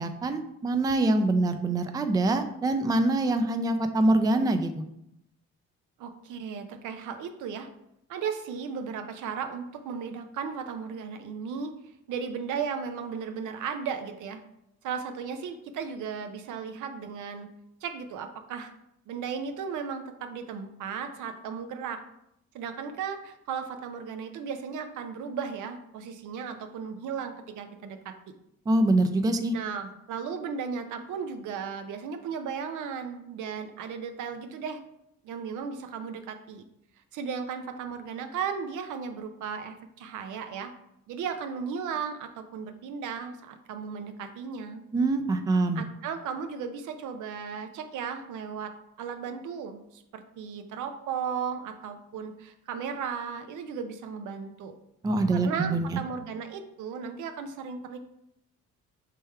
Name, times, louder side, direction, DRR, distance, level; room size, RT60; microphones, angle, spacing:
voice 1, 0.0-4.7 28.7-29.5 44.9-45.8 55.0-56.0, right 2 dB, 15° right, 8 dB, 0.3 m, -24 dB
voice 2, 6.0-7.7 8.1-11.7 12.1-14.4 14.8-17.5 17.8-18.7 19.1-22.0 22.5-28.1 29.5-34.8 35.2-36.6 37.1-40.7 41.1-44.8 45.8-48.7 49.0-54.7 55.3-58.0, right 6 dB, 80° right, 7 dB, 0.6 m, -35 dB
3.4 x 3.2 x 4.5 m, 0.80 s
cardioid pair, 90°, 30 cm